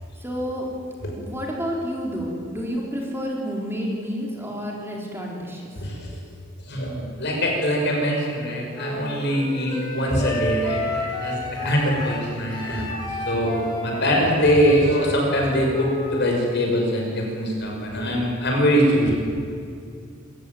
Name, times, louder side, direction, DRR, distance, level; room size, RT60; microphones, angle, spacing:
voice 1, 0.2-0.7 1.2-5.7, equal, 10° right, -2 dB, 3.8 m, -30 dB
voice 2, 5.8-6.1 6.7-11.3 11.6-12.9 13.3-19.1, equal, 55° left, 0 dB, 6.2 m, -23 dB
Wind instrument woodwind instrument, 8.7-16.3, left 1 dB, 25° left, 4.4 m, -31 dB
26.0 x 15.0 x 9.3 m, 2.4 s
head